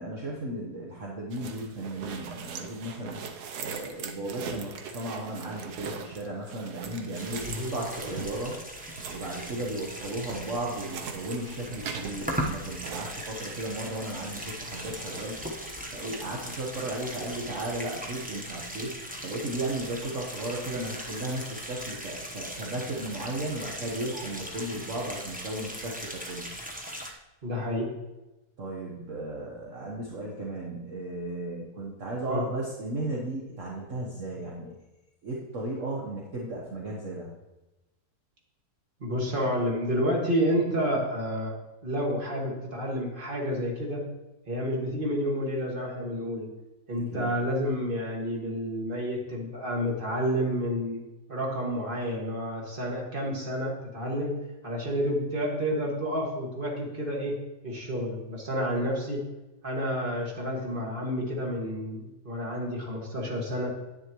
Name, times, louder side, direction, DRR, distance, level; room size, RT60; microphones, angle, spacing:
voice 1, 0.0-3.2 3.6-8.6 9.1-15.4 15.9-26.5 28.6-34.7 35.2-37.3 47.1-47.3, right 2 dB, 55° right, -3 dB, 1.5 m, -35 dB
sound 1, 1.3-13.9 14.2-15.2, right 5 dB, 80° right, 1.4 m, -41 dB
sound 2, 7.1-27.1, equal, 5° right, 0.7 m, -39 dB
voice 2, 27.4-27.9 32.3-32.5 39.0-41.6 41.8-44.0 44.5-46.5 46.9-51.0 51.3-54.3 54.6-57.3 57.6-59.2 59.6-63.7, equal, 35° right, -2 dB, 2.1 m, -30 dB
9.9 x 9.7 x 3.1 m, 1.0 s
omnidirectional pair, 1.7 m